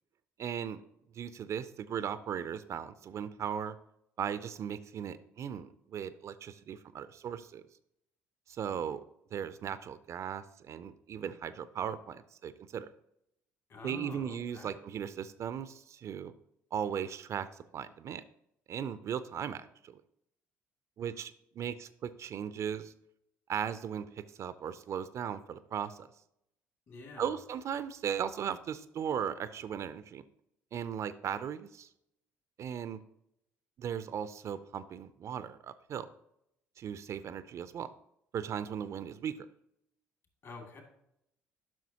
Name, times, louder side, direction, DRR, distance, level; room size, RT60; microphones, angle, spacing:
voice 1, 0.4-0.8 1.2-3.8 4.2-7.6 8.5-9.0 9.3-12.9 13.8-16.3 16.7-17.5 17.7-18.2 18.7-20.0 21.0-22.9 23.5-24.1 24.4-26.1 27.2-30.2 30.7-31.9 32.6-33.0 33.8-36.1 36.8-37.9 38.3-39.3, right 8 dB, 45° right, 14 dB, 0.4 m, -37 dB
voice 2, 13.7-14.8 26.9-27.4 40.4-40.8, left 3 dB, 50° left, 3 dB, 2.4 m, -48 dB
10.5 x 6.0 x 2.8 m, 0.79 s
figure-of-eight pair, 50°, 7 cm